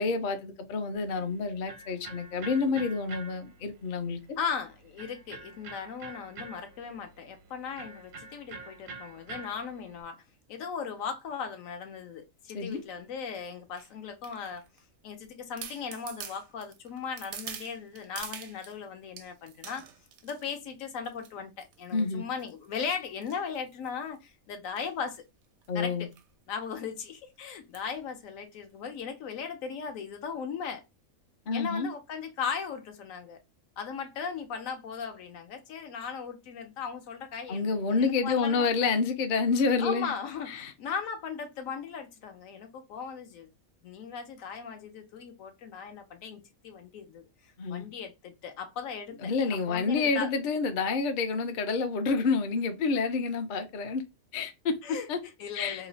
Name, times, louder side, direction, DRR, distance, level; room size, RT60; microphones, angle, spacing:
voice 1, 0.0-4.2 12.5-12.8 21.9-22.2 25.7-26.1 31.5-31.9 37.5-40.1 40.5-40.7 47.6-47.9 49.2-54.0 54.3-54.8 55.1-55.2 55.5-55.8, left 4 dB, 55° left, 0.6 m, -28 dB
Electric guitar, 0.9-10.0, right 3 dB, 60° right, 0.6 m, -47 dB
voice 2, 4.4-10.2 10.5-14.6 15.0-19.8 20.2-25.2 25.7-26.1 26.5-30.8 31.5-33.4 33.8-38.7 39.8-43.5 43.8-50.3 54.8-55.9, left 6 dB, 75° left, 1.0 m, -38 dB
sound 1, 12.7-13.0 13.7-14.8 15.2-15.3 15.6-18.8 19.2-20.6 21.1-21.3 21.6-21.9 22.4-24.2 24.7-24.9 25.1-25.2 25.4-25.7 26.1-26.3 26.6-26.7 27.7-28.0 28.5-28.6, right 8 dB, 85° right, 1.1 m, -45 dB
3.1 x 2.0 x 3.8 m
omnidirectional pair, 1.4 m